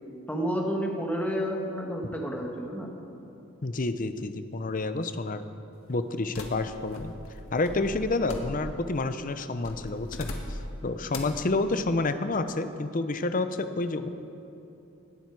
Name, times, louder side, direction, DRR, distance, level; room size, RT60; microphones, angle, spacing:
voice 1, 0.3-2.9, equal, 5° left, 0 dB, 1.6 m, -30 dB
voice 2, 3.6-5.4 5.9-7.1 7.5-14.1, left 2 dB, 40° left, 10 dB, 0.6 m, -29 dB
sound 1, 6.3-8.9 9.6-10.7 11.1-11.5, left 2 dB, 80° left, 1.6 m, -39 dB
18.0 x 12.0 x 4.7 m, 2.9 s
head